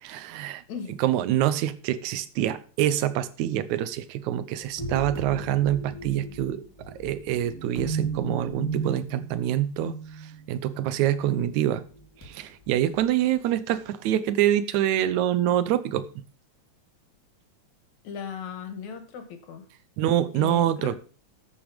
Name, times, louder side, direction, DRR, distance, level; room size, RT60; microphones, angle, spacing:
voice 1, 0.0-0.6 1.0-11.8 12.2-16.1 20.0-20.9, right 12 dB, 80° right, 2.2 m, -26 dB
voice 2, 0.7-1.0 18.0-19.6 20.3-21.0, left 7 dB, 75° left, 3.1 m, -37 dB
sound 1, 4.6-11.4 11.9-12.3 12.9-13.0, right 4 dB, 5° left, 3.6 m, -35 dB
13.5 x 7.1 x 5.1 m
omnidirectional pair, 3.4 m